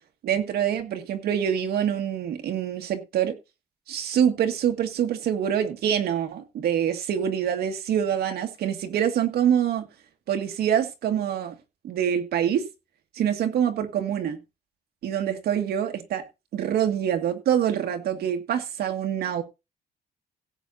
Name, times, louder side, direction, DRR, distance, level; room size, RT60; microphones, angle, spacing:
voice 1, 0.2-3.4 3.9-9.9 10.3-11.5 11.8-12.6 13.1-14.4 15.0-16.2 16.5-19.4, right 9 dB, 75° right, 2.1 m, -25 dB
17.0 x 8.3 x 2.7 m
cardioid pair, 140°, 16 cm